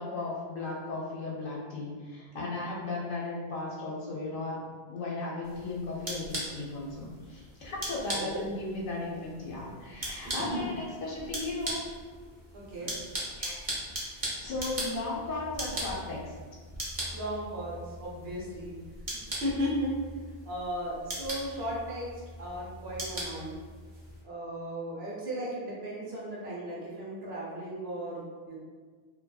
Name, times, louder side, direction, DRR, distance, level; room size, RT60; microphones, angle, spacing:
voice 1, 0.0-11.8 13.4-13.6 14.0-16.3, left 2 dB, 65° left, -4 dB, 0.6 m, -36 dB
sound 1, 5.4-24.2, right 1 dB, 40° right, 0.6 m, -40 dB
voice 2, 8.1-8.4 10.2-10.7 12.5-12.9 17.1-18.8 19.1-19.9 20.4-22.1 22.4-23.5 24.2-28.2 28.5-28.6, equal, 80° right, -6 dB, 1.0 m, -35 dB
2.7 x 2.1 x 2.2 m, 1.5 s
omnidirectional pair, 1.1 m